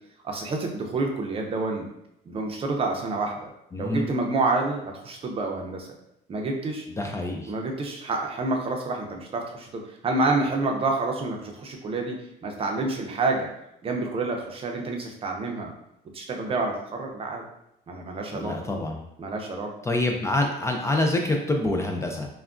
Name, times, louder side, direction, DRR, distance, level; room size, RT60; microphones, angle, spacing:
voice 1, 0.2-1.9 2.3-3.3 3.8-5.9 6.3-6.9 7.5-12.1 12.4-13.5 13.8-15.7 16.1-17.4 17.9-18.5 19.2-19.7, right 3 dB, 35° right, 1 dB, 0.6 m, -28 dB
voice 2, 3.7-4.1 7.0-7.5 18.3-19.0 19.9-22.3, left 2 dB, 15° left, 2 dB, 0.4 m, -26 dB
3.4 x 2.2 x 2.4 m, 0.82 s
cardioid pair, 110°, 17 cm